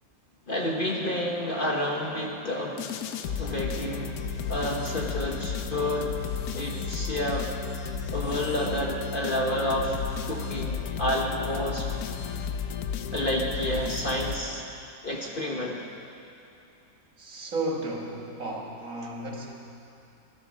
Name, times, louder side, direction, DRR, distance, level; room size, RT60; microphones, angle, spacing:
voice 1, 0.5-2.9 3.4-4.2 4.5-6.1 6.5-7.5 8.1-10.0 10.3-11.9 13.1-14.6 15.0-15.9, left 1 dB, 35° left, -1 dB, 1.2 m, -29 dB
sound 1, 2.8-14.9, left 6 dB, 70° left, 1.2 m, -33 dB
voice 2, 12.1-12.5 14.9-15.0 17.2-19.5, right 2 dB, 55° right, -1 dB, 2.0 m, -34 dB
17.0 x 12.5 x 6.3 m, 2.7 s
omnidirectional pair, 1.7 m